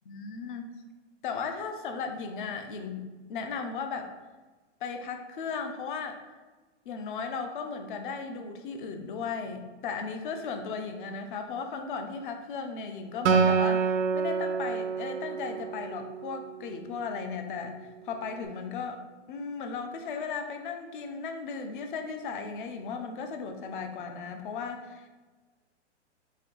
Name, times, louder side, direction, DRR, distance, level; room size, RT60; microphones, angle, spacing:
voice 1, 0.1-0.7 1.2-4.1 4.8-6.2 6.9-25.1, left 5 dB, 45° left, 6 dB, 0.5 m, -36 dB
Acoustic guitar, 13.3-16.7, right 6 dB, 80° right, 0.6 m, -27 dB
4.2 x 2.8 x 3.8 m, 1.3 s
hypercardioid pair, 160°, 36 cm